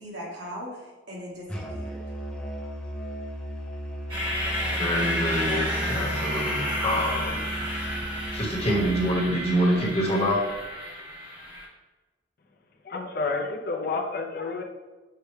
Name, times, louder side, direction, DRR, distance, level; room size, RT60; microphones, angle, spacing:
voice 1, 0.0-2.0, equal, 70° right, -5 dB, 1.5 m, -39 dB
Musical instrument, 1.5-9.3, equal, 5° left, 0.6 m, -35 dB
sound 1, 4.1-11.7, equal, 25° right, 1.0 m, -31 dB
voice 2, 4.6-7.4 8.3-10.4, equal, 35° left, -3 dB, 1.0 m, -26 dB
voice 3, 12.8-14.6, left 3 dB, 55° left, 3 dB, 0.5 m, -30 dB
6.6 x 2.2 x 3.2 m, 1.2 s
head